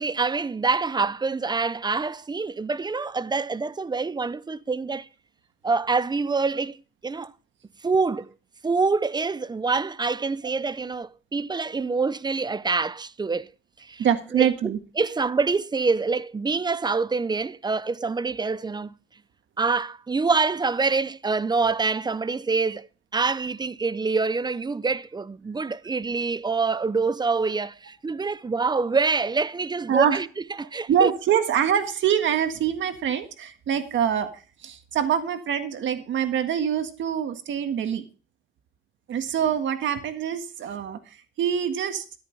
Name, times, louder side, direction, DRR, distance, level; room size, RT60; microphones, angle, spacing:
voice 1, 0.0-5.1 5.6-6.8 7.0-7.3 7.8-8.3 8.6-13.5 13.8-14.1 14.3-14.5 15.0-19.0 19.6-22.9 23.1-30.3 30.6-31.1, right 4 dB, 20° right, 0.6 m, -25 dB
voice 2, 14.0-14.8 29.9-30.2 30.9-38.0 39.1-41.0 41.4-42.0, right 8 dB, 70° right, 1.8 m, -25 dB
13.0 x 10.5 x 3.4 m
cardioid pair, 90°, 20 cm